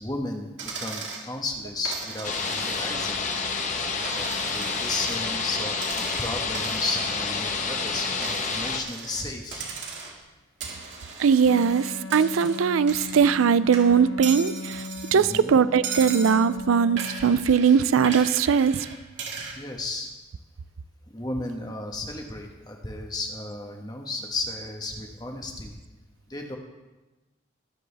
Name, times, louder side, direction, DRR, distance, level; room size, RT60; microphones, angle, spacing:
voice 1, 0.0-3.2 4.1-9.7 15.1-15.6 19.4-20.1 21.1-25.8 26.3-26.6, left 2 dB, 20° left, 2 dB, 1.3 m, -34 dB
Coin (dropping), 0.6-1.3 1.9-3.2 3.5-5.2 5.8-7.8 8.2-9.3 9.5-10.2 10.6-13.5 13.7-15.4 15.8-16.4 17.0-19.6, right 5 dB, 60° right, 2.3 m, -37 dB
sound 1, 2.2-8.8, left 4 dB, 40° left, 1.0 m, -29 dB
voice 2, 11.2-14.8 15.1-18.9, right 6 dB, 90° right, 15 dB, 0.4 m, -20 dB
Wind instrument woodwind instrument, 11.4-17.5, left 3 dB, 80° left, 0.9 m, -38 dB
22.5 x 7.8 x 3.4 m, 1.1 s
head